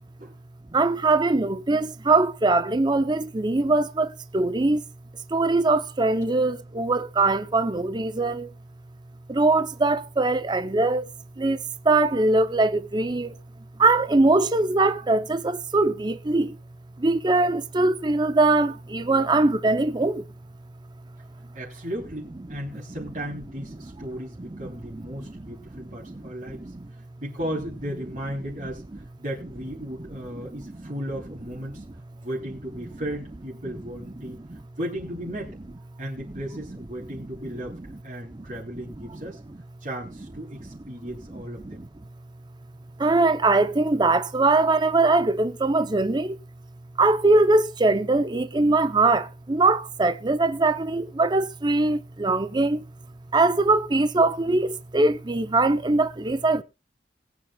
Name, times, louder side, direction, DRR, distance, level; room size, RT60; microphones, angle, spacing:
voice 1, 0.7-4.8 5.3-8.5 9.3-11.1 11.4-11.6 11.8-13.3 13.8-16.6 17.0-20.2 24.4-24.6 25.2-25.5 26.0-26.7 30.5-30.6 38.3-38.4 41.6-41.9 43.0-46.4 47.0-52.8 53.3-56.6, right 2 dB, 25° right, 0.6 m, -22 dB
voice 2, 21.5-26.6 27.2-28.8 29.2-31.8 32.2-34.4 34.8-35.6 36.0-39.4 39.8-41.8, equal, 45° right, 3.1 m, -35 dB
21.5 x 8.6 x 2.3 m
head